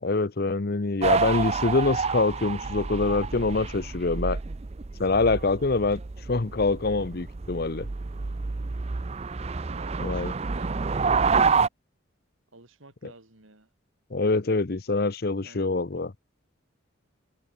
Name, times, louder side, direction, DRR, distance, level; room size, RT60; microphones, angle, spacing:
voice 1, 0.0-4.4 5.0-6.0 6.3-7.9 10.0-10.3 14.1-16.1, left 3 dB, 50° left, 0.7 m, -25 dB
sound 1, 1.0-11.7, right 4 dB, 30° right, 0.5 m, -28 dB
voice 2, 9.7-11.4 12.5-13.7 15.4-15.7, right 2 dB, 80° right, 2.9 m, -50 dB
head